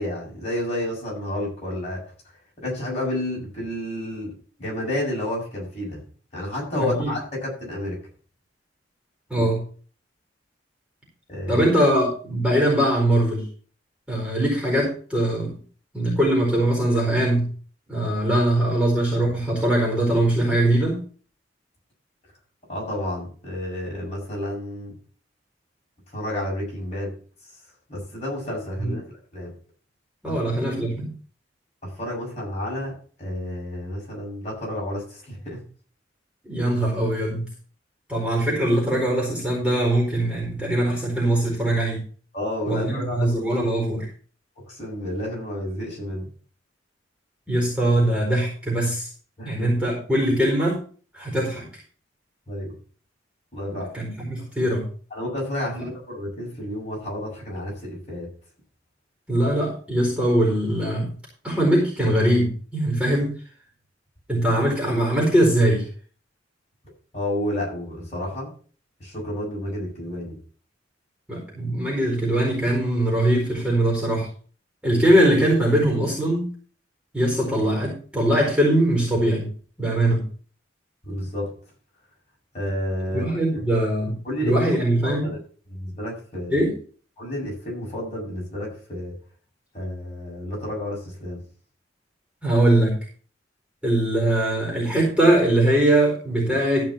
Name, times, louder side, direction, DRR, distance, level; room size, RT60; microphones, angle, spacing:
voice 1, 0.0-2.0 2.6-4.3 4.6-6.0 6.3-8.0 9.4-9.5 11.3-11.6 22.7-24.9 26.1-27.1 27.9-29.0 29.3-29.5 31.8-35.6 42.3-43.7 44.6-46.2 49.4-49.7 52.5-52.7 53.5-53.9 55.1-58.3 67.1-68.5 69.0-70.4 81.0-81.5 82.5-83.6 84.2-84.5 85.0-85.4 85.7-86.7 87.2-89.1 89.7-91.4, left 1 dB, 35° left, -3 dB, 7.0 m, -30 dB
voice 2, 9.3-9.6 11.5-13.5 14.1-15.6 15.9-17.5 17.9-21.0 28.8-29.0 30.2-31.1 36.4-37.5 38.1-42.0 42.7-44.1 47.5-49.1 49.4-50.8 51.1-51.7 53.7-54.9 55.7-55.8 59.3-61.1 61.4-63.3 64.3-65.8 71.3-74.3 74.8-76.4 77.1-79.5 79.8-80.2 83.1-84.1 84.4-85.3 86.5-86.7 92.4-92.9 93.8-96.9, right 1 dB, 5° right, -2 dB, 4.5 m, -21 dB
14.0 x 5.4 x 5.8 m, 0.41 s
head